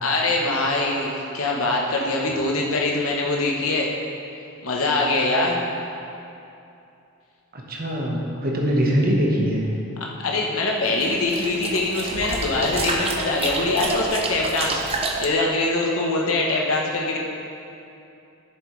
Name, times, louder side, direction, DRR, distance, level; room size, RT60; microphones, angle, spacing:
voice 1, 0.0-3.9 4.6-5.6 10.2-17.2, left 2 dB, 75° left, -2 dB, 1.0 m, -23 dB
voice 2, 7.5-9.6, equal, 45° right, -2 dB, 1.2 m, -22 dB
sound 1, 10.9-15.3, right 3 dB, 25° right, 0.6 m, -29 dB
10.5 x 7.5 x 3.2 m, 2.7 s
head